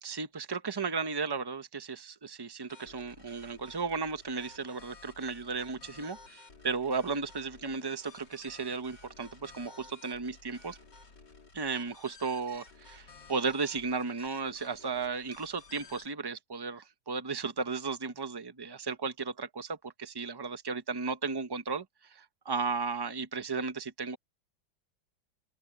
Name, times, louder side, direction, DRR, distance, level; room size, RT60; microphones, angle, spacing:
voice 1, 0.0-10.8 11.5-21.8 22.1-24.2, right 4 dB, 30° right, 0.4 m, -35 dB
sound 1, 2.7-16.1, left 4 dB, 55° left, 3.8 m, -54 dB
open air
omnidirectional pair, 2.2 m